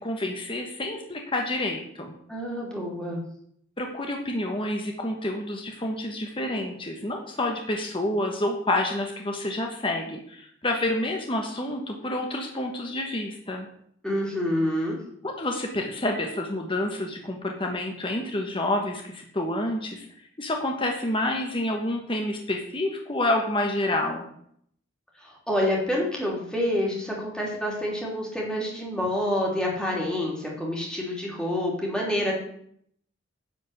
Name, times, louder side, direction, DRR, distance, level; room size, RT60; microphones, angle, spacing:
voice 1, 0.0-2.1 3.8-13.7 15.2-20.0 20.4-24.3, left 1 dB, 25° left, 2 dB, 1.2 m, -28 dB
voice 2, 2.3-3.2 14.0-15.0 25.2-32.3, left 1 dB, 5° left, -3 dB, 3.1 m, -27 dB
10.5 x 5.2 x 8.0 m, 0.68 s
head